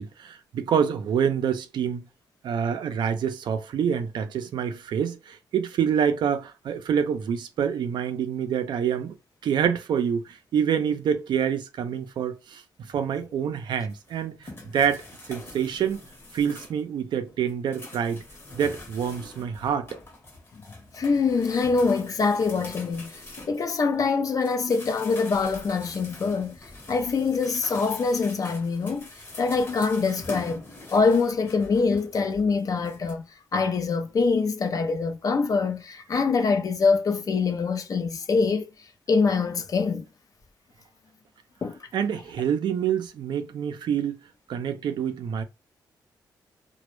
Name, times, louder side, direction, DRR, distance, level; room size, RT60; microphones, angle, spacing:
voice 1, 0.0-2.0 2.4-9.1 9.4-12.6 12.9-15.0 15.3-16.0 16.3-18.2 18.5-19.9 41.9-44.2 44.5-45.4, right 8 dB, 75° right, 0.4 m, -26 dB
sound 1, 13.9-16.9 17.3-24.0 24.4-33.1, left 2 dB, 30° left, 1.0 m, -44 dB
voice 2, 20.9-23.2 23.5-29.1 29.4-30.6 30.9-33.3 33.5-40.1 41.6-41.8, left 4 dB, 50° left, 0.5 m, -24 dB
2.2 x 2.0 x 3.0 m
cardioid pair, 90°, 8 cm